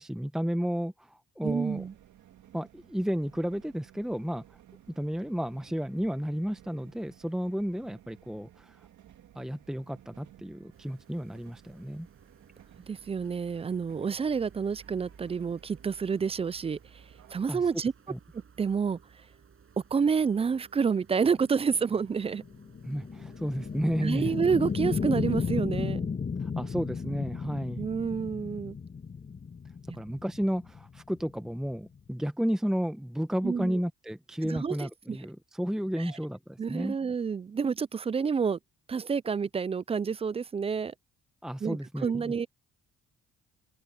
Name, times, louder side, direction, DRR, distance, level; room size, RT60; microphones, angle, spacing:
voice 1, 0.0-1.8 2.5-4.6 5.0-8.9 9.3-12.1 17.5-17.6 18.1-18.2 22.9-24.3 26.4-27.9 29.9-37.0 41.4-42.3, equal, ahead, 0.9 m, -32 dB
voice 2, 1.4-1.9 12.9-17.0 17.3-17.9 18.6-19.0 19.9-22.4 24.0-26.1 27.8-28.8 33.4-33.8 34.4-35.2 36.0-36.1 36.6-38.6 38.9-40.9 41.6-42.5, right 6 dB, 20° right, 0.3 m, -29 dB
sound 1, 1.5-17.4, right 11 dB, 75° right, 2.7 m, -58 dB
sound 2, 10.7-25.6, right 6 dB, 45° right, 7.3 m, -58 dB
sound 3, 21.4-32.1, left 5 dB, 30° left, 1.7 m, -34 dB
cardioid pair, 90°, 30 cm